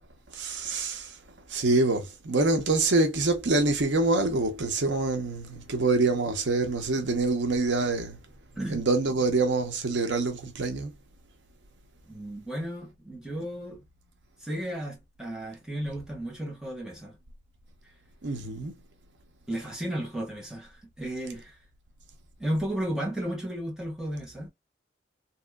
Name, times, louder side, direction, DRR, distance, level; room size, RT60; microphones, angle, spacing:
voice 1, 0.3-1.1 1.5-8.2 8.7-10.9 18.2-18.7, right 3 dB, 85° right, 0.8 m, -26 dB
voice 2, 8.6-8.9 12.1-13.8 14.4-17.2 19.5-21.6 22.4-24.5, right 1 dB, 5° right, 1.3 m, -34 dB
3.0 x 2.7 x 2.3 m
head